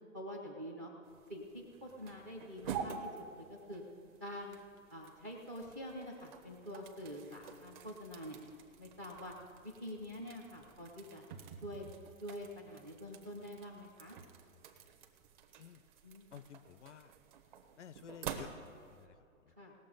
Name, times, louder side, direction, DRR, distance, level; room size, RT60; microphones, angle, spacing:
voice 1, 0.1-0.9 1.3-3.8 4.2-4.6 4.9-8.4 8.8-9.3 9.6-11.2 11.6-11.9 12.2-14.2 16.0-16.4 19.6-19.7, equal, 10° right, 2 dB, 0.4 m, -46 dB
sound 1, 1.0-19.1, right 7 dB, 35° right, 0.9 m, -49 dB
voice 2, 16.3-17.1 17.8-18.5 19.0-19.2 19.4-19.5, left 8 dB, 60° left, 17 dB, 0.5 m, -52 dB
18.5 x 6.9 x 5.2 m, 2.4 s
hypercardioid pair, 150°, 42 cm